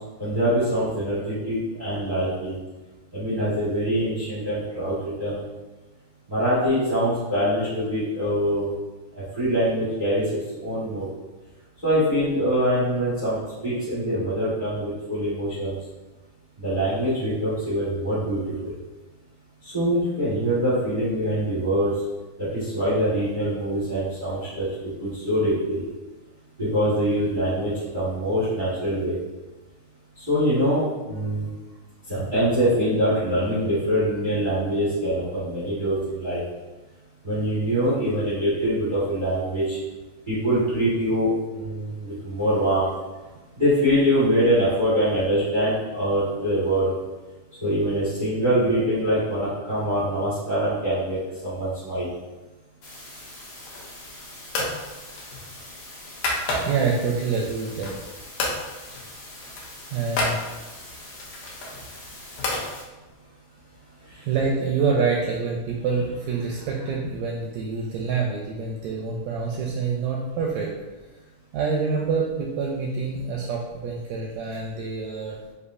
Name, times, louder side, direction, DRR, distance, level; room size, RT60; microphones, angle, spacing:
voice 1, 0.2-2.6 3.1-5.4 6.3-8.7 9.3-11.1 11.8-15.8 16.6-18.7 19.6-21.9 22.4-25.8 26.6-29.2 30.2-31.5 32.1-36.4 37.2-39.8 40.3-42.9 43.6-46.9 47.6-52.1 64.1-64.2, equal, 45° right, -11 dB, 0.6 m, -24 dB
sound 1, 52.8-62.8, left 1 dB, 60° left, 2.4 m, -43 dB
sound 2, 53.6-54.0 54.5-54.8 55.2-56.9 57.4-58.1 58.4-58.6 58.9-59.1 59.3-60.4 61.2-62.7, left 2 dB, 85° left, 2.3 m, -29 dB
voice 2, 56.7-57.9 59.9-60.6 64.3-70.7 71.5-75.4, right 5 dB, 80° right, -2 dB, 1.6 m, -26 dB
6.5 x 2.7 x 2.6 m, 1.2 s
omnidirectional pair, 3.6 m